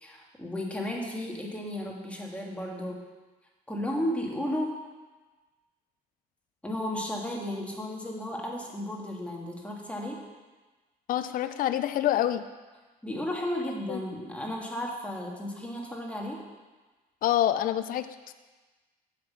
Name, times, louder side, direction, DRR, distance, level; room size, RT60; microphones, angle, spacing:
voice 1, 0.0-3.0 3.7-4.7 6.6-10.2 13.0-16.4, left 1 dB, 5° left, -1 dB, 1.7 m, -34 dB
voice 2, 11.1-12.4 13.9-14.0 17.2-18.3, left 12 dB, 55° left, 11 dB, 0.5 m, -27 dB
7.6 x 5.8 x 7.3 m, 1.3 s
cardioid pair, 110°, 17 cm